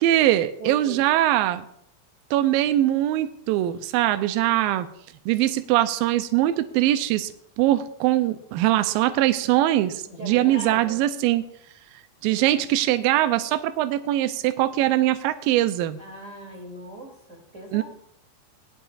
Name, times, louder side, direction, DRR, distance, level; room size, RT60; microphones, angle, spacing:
voice 1, 0.0-1.6 2.3-4.9 5.3-7.3 7.6-11.5 12.2-16.0 17.7-17.8, right 14 dB, 85° right, 10 dB, 2.1 m, -22 dB
voice 2, 0.6-1.0 10.0-11.0 12.3-12.6 16.0-17.8, right 1 dB, 20° right, -2 dB, 2.3 m, -39 dB
19.5 x 11.0 x 2.5 m, 0.71 s
omnidirectional pair, 4.7 m